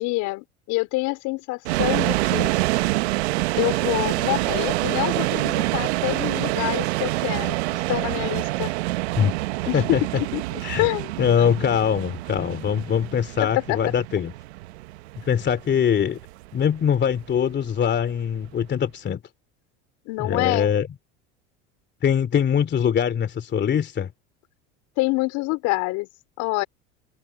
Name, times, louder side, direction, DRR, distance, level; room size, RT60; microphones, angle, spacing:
voice 1, 0.0-2.5 3.6-7.6 7.9-8.7 9.6-9.8 10.3-11.1 13.4-13.8 20.1-20.7 25.0-26.1 26.4-26.6, left 23 dB, 65° left, 4.5 m, -26 dB
sound 1, 1.6-18.6, right 20 dB, 80° right, 1.2 m, -26 dB
voice 2, 11.2-14.3 15.3-16.2 16.5-19.2 20.2-20.9 22.0-24.1, left 8 dB, 35° left, 2.8 m, -22 dB
supercardioid pair, 95°, 32 cm